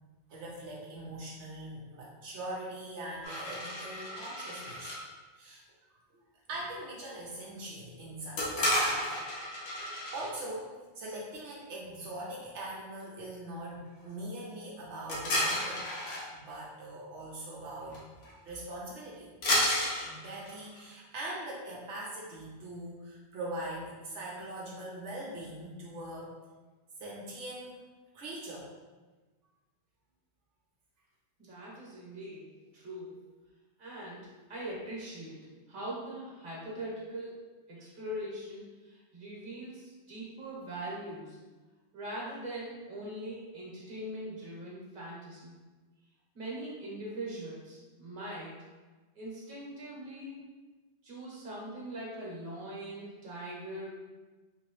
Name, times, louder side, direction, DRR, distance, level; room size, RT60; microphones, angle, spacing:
voice 1, 0.3-4.9 5.4-6.0 6.5-9.1 9.6-15.9 16.3-18.0 18.4-19.3 20.0-26.3 27.0-27.8 28.1-28.7, right 1 dB, 75° right, -4 dB, 1.0 m, -42 dB
sound 1, 3.2-5.0 8.4-10.3 15.1-16.3 17.9-18.0 18.2-18.5 19.4-20.9, left 1 dB, 80° left, 1.2 m, -32 dB
voice 2, 31.4-32.5 32.7-33.2 33.8-37.4 37.7-41.4 41.9-45.5 46.3-48.6 49.1-50.5 51.0-53.9, right 1 dB, 45° right, -5 dB, 1.2 m, -41 dB
3.1 x 2.9 x 3.0 m, 1.3 s
omnidirectional pair, 1.2 m